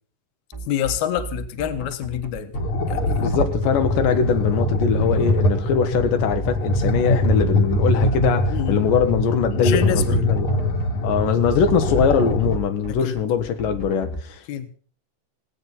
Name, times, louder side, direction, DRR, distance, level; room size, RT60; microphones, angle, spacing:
sound 1, 0.5-14.2, right 3 dB, 10° right, 0.9 m, -34 dB
voice 1, 0.7-2.5 2.9-3.2 8.5-8.9 9.5-10.2 13.0-13.1 14.5-14.7, left 10 dB, 70° left, 2.4 m, -26 dB
sound 2, 2.5-12.6, left 1 dB, 50° left, 1.9 m, -23 dB
voice 2, 3.2-10.5 11.0-14.4, left 7 dB, 90° left, 2.7 m, -22 dB
18.5 x 8.5 x 5.6 m
omnidirectional pair, 3.8 m